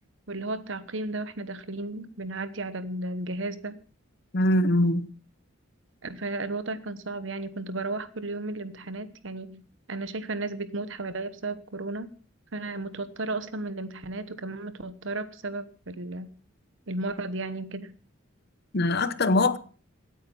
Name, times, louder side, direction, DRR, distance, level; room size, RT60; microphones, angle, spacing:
voice 1, 0.3-3.8 6.0-9.6 9.9-12.1 12.5-16.3 16.9-17.9, right 2 dB, 65° right, 1.1 m, -34 dB
voice 2, 4.3-5.1 18.7-19.6, left 1 dB, 50° left, 0.8 m, -22 dB
16.5 x 9.1 x 5.5 m
head